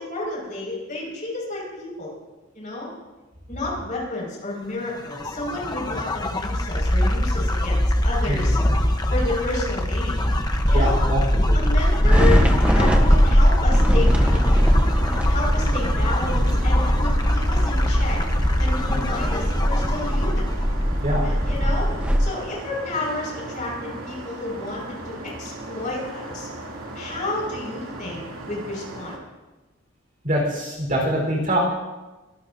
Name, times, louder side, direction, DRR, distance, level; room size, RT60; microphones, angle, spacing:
voice 1, 0.0-2.1 2.5-2.9 3.5-8.6 9.1-10.2 10.7-12.4 12.7-14.7 15.3-18.2 18.6-20.5 21.2-21.9 22.2-26.5 26.9-29.2, left 2 dB, 40° left, -3 dB, 5.8 m, -31 dB
sound 1, 5.0-20.6, left 1 dB, 20° left, 1.0 m, -22 dB
voice 2, 8.3-8.8 10.7-11.7 21.0-21.2 30.2-31.6, right 1 dB, 40° right, -1 dB, 4.4 m, -24 dB
sound 2, 10.2-22.2, equal, 5° right, 1.0 m, -21 dB
sound 3, 12.5-29.2, right 1 dB, 85° right, 2.8 m, -36 dB
23.0 x 17.5 x 2.7 m, 1.2 s
head